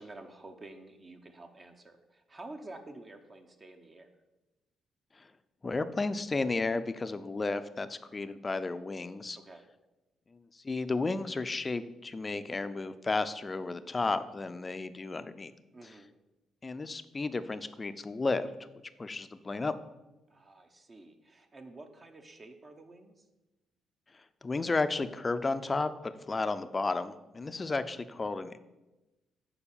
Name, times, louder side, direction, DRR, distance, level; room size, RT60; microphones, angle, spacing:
voice 1, 0.0-4.1 9.4-9.7 15.7-16.1 20.3-23.2, right 2 dB, 35° right, 5 dB, 0.8 m, -50 dB
voice 2, 5.6-9.4 10.3-15.5 16.6-18.5 19.0-19.7 24.4-28.6, left 3 dB, 25° left, 11 dB, 0.5 m, -33 dB
7.0 x 4.8 x 7.0 m, 1.1 s
cardioid pair, 90°, 0 cm